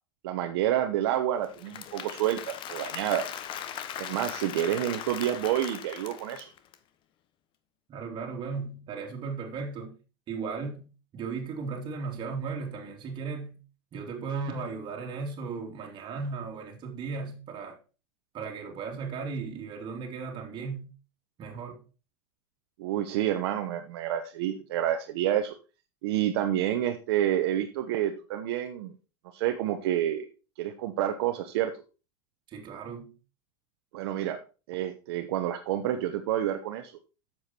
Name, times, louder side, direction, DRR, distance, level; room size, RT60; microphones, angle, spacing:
voice 1, 0.2-3.2 4.0-6.5 22.8-25.5 26.0-28.9 29.3-30.3 30.6-31.7 33.9-34.4 34.7-36.9, right 11 dB, 75° right, 1.1 m, -28 dB
Applause / Crowd, 1.4-6.7, left 9 dB, 40° left, 1.0 m, -39 dB
voice 2, 7.9-10.0 10.3-13.6 13.9-17.8 18.3-20.9 21.4-21.8 32.5-33.2, right 5 dB, 35° right, 2.9 m, -36 dB
8.0 x 7.3 x 4.4 m
supercardioid pair, 125°, 13 cm